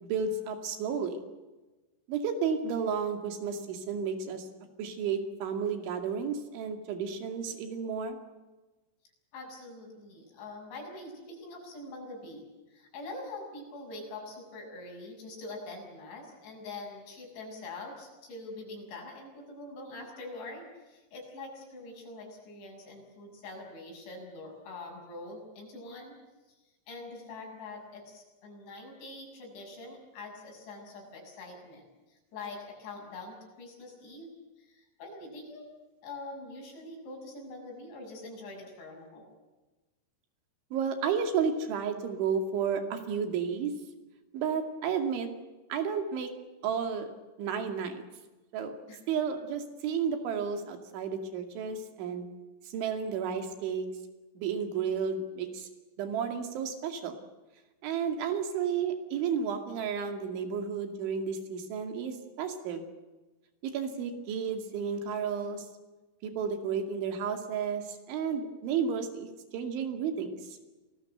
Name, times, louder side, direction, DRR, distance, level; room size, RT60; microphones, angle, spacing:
voice 1, 0.0-1.2 2.1-4.5 4.8-8.2 40.7-43.7 44.3-45.3 45.7-46.3 46.6-47.1 47.4-47.9 48.5-48.7 49.1-52.3 52.7-53.9 54.4-55.7 56.0-57.1 57.8-62.9 63.6-65.7 66.2-70.6, right 6 dB, 85° right, 6 dB, 4.9 m, -32 dB
voice 2, 9.3-26.2 26.9-34.3 34.6-35.7 36.0-39.3 48.9-49.0, left 2 dB, 75° left, 1 dB, 9.1 m, -44 dB
28.0 x 19.5 x 8.0 m, 1.1 s
omnidirectional pair, 5.3 m